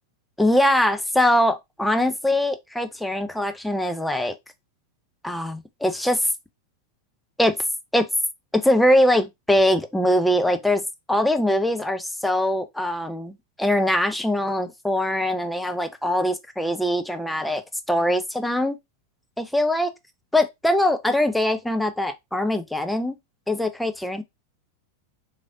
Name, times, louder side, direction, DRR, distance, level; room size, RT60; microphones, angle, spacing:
voice 1, 0.4-4.3 5.2-6.3 7.4-7.6 7.9-8.1 8.5-10.8 11.1-13.3 13.6-17.6 17.9-18.8 19.4-19.9 20.3-23.2 23.5-24.2, left 1 dB, 5° left, 0.4 m, -22 dB
3.1 x 2.5 x 2.6 m
figure-of-eight pair, 90°, 0 cm